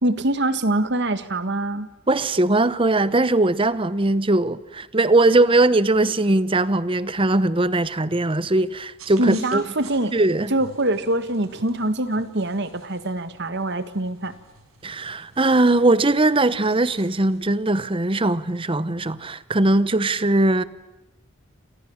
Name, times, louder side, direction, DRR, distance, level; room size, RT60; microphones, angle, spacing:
voice 1, 0.0-1.9 9.2-10.1 10.5-14.3, right 1 dB, 55° right, 1.8 m, -24 dB
voice 2, 2.1-9.6 10.1-10.5 14.8-20.6, right 2 dB, 25° right, 0.9 m, -20 dB
sound 1, 9.0-17.6, right 3 dB, 85° right, 7.4 m, -49 dB
29.5 x 27.0 x 7.3 m
head